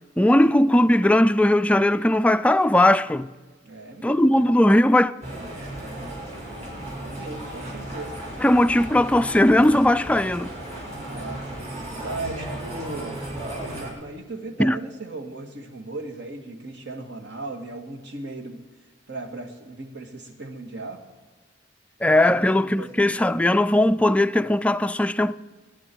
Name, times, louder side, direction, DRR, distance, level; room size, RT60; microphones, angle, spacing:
voice 1, 0.2-3.3 4.0-5.1 8.4-10.5 14.6-14.8 22.0-25.3, left 1 dB, 5° left, 0.3 m, -18 dB
voice 2, 3.6-4.5 7.0-8.1 11.1-11.4 11.9-13.2 13.7-18.6 19.1-21.0 22.3-23.0, right 2 dB, 65° right, 1.9 m, -37 dB
sound 1, 5.2-13.9, right 1 dB, 40° right, 5.2 m, -35 dB
22.0 x 9.7 x 4.6 m
head